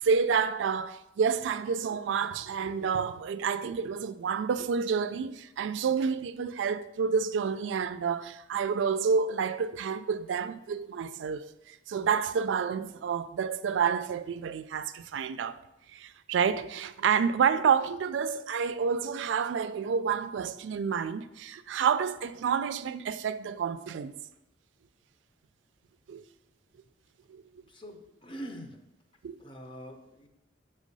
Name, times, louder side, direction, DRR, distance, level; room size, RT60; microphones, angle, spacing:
voice 1, 0.0-15.6 15.9-24.1 26.1-26.2 27.3-27.4 29.2-29.4, right 6 dB, 90° right, 0.3 m, -29 dB
voice 2, 27.7-28.8 29.4-30.3, equal, 30° left, 0.7 m, -44 dB
6.4 x 3.3 x 5.3 m
head